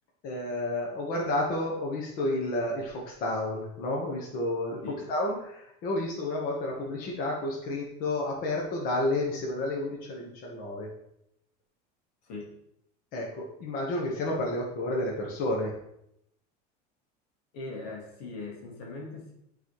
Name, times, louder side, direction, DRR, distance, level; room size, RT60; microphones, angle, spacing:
voice 1, 0.2-10.9 13.1-15.7, left 1 dB, 50° left, -1 dB, 1.4 m, -31 dB
voice 2, 12.2-12.6 17.5-19.3, left 3 dB, 80° left, -1 dB, 2.4 m, -40 dB
11.5 x 4.2 x 3.2 m, 0.77 s
cardioid pair, 145°, 20 cm